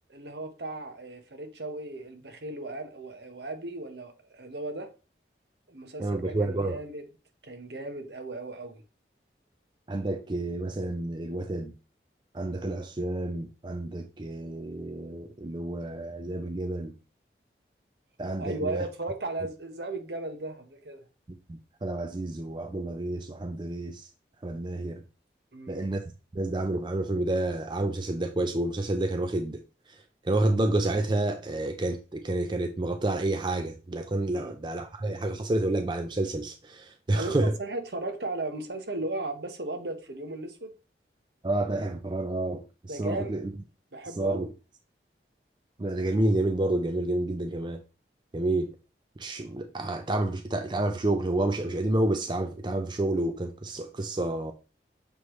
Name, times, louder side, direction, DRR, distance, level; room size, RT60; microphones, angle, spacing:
voice 1, 0.1-4.9 5.7-7.0 7.4-8.8 18.4-21.0 25.5-25.9 34.3-34.6 37.1-40.7 42.9-43.3 43.9-44.5, right 2 dB, 70° right, 1.1 m, -36 dB
voice 2, 6.0-6.8 9.9-11.7 12.3-16.9 18.2-18.9 21.5-24.1 24.4-25.0 25.7-26.0 26.3-29.6 29.9-37.5 41.4-43.5 44.2-44.5 45.8-47.8 48.3-48.7 49.2-54.5, right 2 dB, 25° right, 0.4 m, -29 dB
6.9 x 4.7 x 3.1 m
head